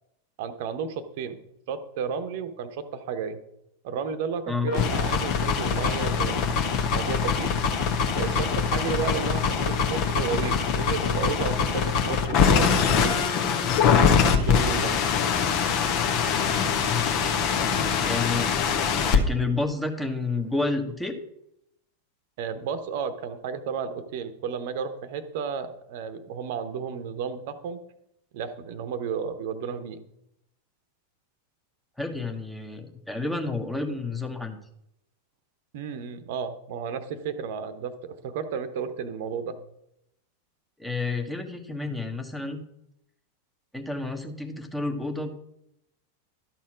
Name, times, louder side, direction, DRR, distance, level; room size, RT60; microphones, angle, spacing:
voice 1, 0.4-1.4 1.7-3.4 3.8-6.6 6.9-7.5 8.1-13.3 14.3-15.0 22.4-27.8 28.3-30.0 35.7-39.6, right 6 dB, 50° right, 11 dB, 1.0 m, -32 dB
sound 1, 4.7-19.2, left 6 dB, 40° left, 1.1 m, -23 dB
voice 2, 18.0-21.2 32.0-34.6 40.8-42.6 43.7-45.3, left 3 dB, 5° left, 4 dB, 1.3 m, -30 dB
12.5 x 4.3 x 6.2 m, 0.79 s
figure-of-eight pair, 90°, 0 cm